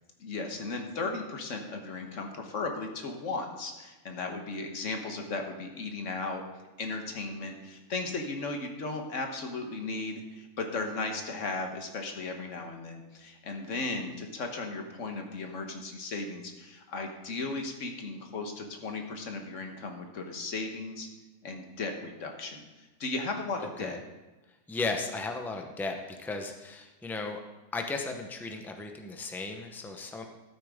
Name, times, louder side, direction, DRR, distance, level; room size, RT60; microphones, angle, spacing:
voice 1, 0.2-6.4 6.8-21.1 21.4-24.0, left 3 dB, 85° left, 4 dB, 1.6 m, -36 dB
voice 2, 23.6-24.0 24.7-27.4 27.7-30.3, left 3 dB, ahead, 3 dB, 0.7 m, -35 dB
13.0 x 8.6 x 3.6 m, 1.1 s
omnidirectional pair, 1.3 m